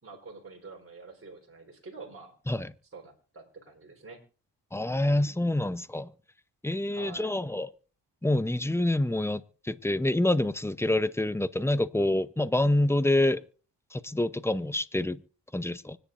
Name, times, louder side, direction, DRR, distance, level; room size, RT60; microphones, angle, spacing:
voice 1, 0.0-2.3 2.9-4.2 6.9-7.3, right 3 dB, 30° right, 3.9 m, -47 dB
voice 2, 4.7-6.1 6.6-7.7 8.2-13.4 13.9-15.2 15.5-16.0, left 1 dB, 5° left, 0.7 m, -27 dB
25.0 x 10.0 x 2.5 m
cardioid pair, 80°, 42 cm